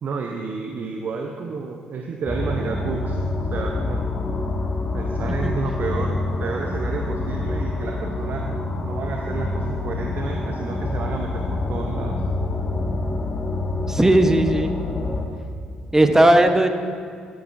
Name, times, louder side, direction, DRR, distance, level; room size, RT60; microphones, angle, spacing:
voice 1, 0.0-4.1 4.9-8.5 8.8-12.2, right 4 dB, 50° right, 2 dB, 0.6 m, -31 dB
sound 1, 2.2-15.3, left 2 dB, 25° left, 1.1 m, -26 dB
voice 2, 13.9-14.7 15.9-16.7, right 1 dB, 10° right, 7 dB, 0.8 m, -16 dB
12.5 x 8.6 x 2.5 m, 2.3 s
figure-of-eight pair, 45°, 4 cm